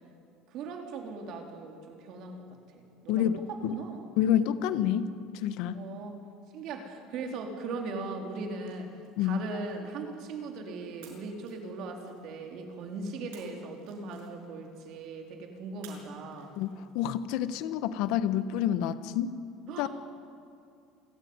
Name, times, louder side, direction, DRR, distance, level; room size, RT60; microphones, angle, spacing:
voice 1, 0.5-4.1 5.7-6.2 6.5-8.9 9.2-16.6 19.7-19.9, right 3 dB, 50° right, 3 dB, 3.6 m, -39 dB
voice 2, 3.1-3.8 4.2-5.8 9.2-9.4 16.6-19.4 19.8-19.9, left 10 dB, 65° left, 13 dB, 1.1 m, -28 dB
sound 1, 8.2-10.5 11.0-12.6 13.3-14.7 15.8-17.2, right 6 dB, 85° right, 6.1 m, -57 dB
27.5 x 14.5 x 9.6 m, 2.4 s
cardioid pair, 155°, 0 cm